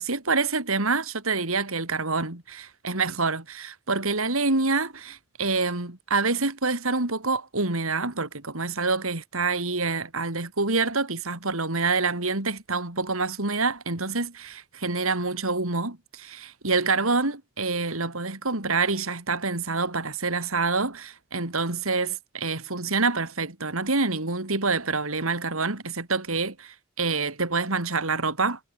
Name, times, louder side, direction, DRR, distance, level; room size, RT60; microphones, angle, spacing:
voice 1, 0.0-28.6, right 3 dB, 85° right, 3.7 m, -27 dB
head